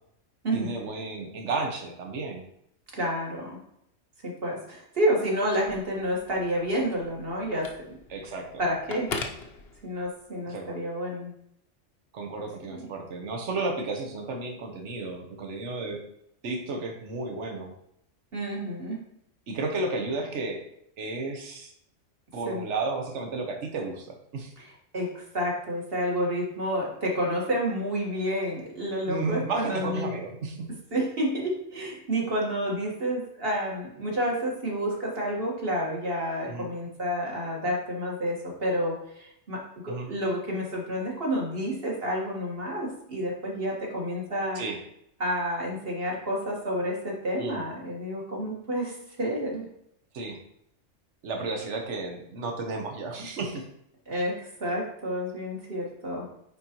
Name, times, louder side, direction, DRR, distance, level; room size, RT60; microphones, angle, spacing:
voice 1, 0.5-2.4 8.1-8.6 10.4-10.8 12.1-16.0 16.4-17.7 19.5-20.6 21.0-21.7 22.3-24.5 29.1-30.7 36.5-36.7 39.9-40.1 44.5-44.8 47.4-47.6 50.1-50.4 51.2-53.7, right 3 dB, 70° right, 3 dB, 1.3 m, -33 dB
voice 2, 2.9-3.5 4.2-7.7 8.6-9.2 9.8-11.3 12.7-12.8 18.3-19.0 22.5-22.6 24.6-30.1 30.9-44.6 45.2-49.7 54.1-56.3, equal, 50° right, -2 dB, 1.8 m, -29 dB
Telephone, 5.5-10.3, left 4 dB, 60° left, 0.9 m, -41 dB
9.5 x 3.9 x 3.0 m, 0.74 s
omnidirectional pair, 1.3 m